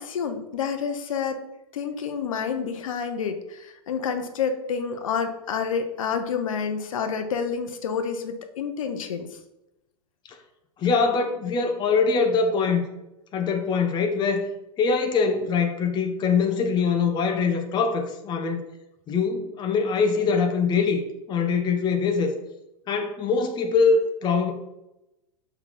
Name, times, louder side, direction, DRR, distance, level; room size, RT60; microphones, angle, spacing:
voice 1, 0.0-1.4 1.7-9.3, left 6 dB, 60° left, 7 dB, 0.9 m, -29 dB
voice 2, 10.8-12.9 13.3-14.5 14.8-18.6 19.1-21.0 21.3-22.3 22.9-24.5, left 5 dB, 25° left, 5 dB, 0.8 m, -23 dB
5.8 x 3.4 x 5.9 m, 0.93 s
figure-of-eight pair, 95°, 19 cm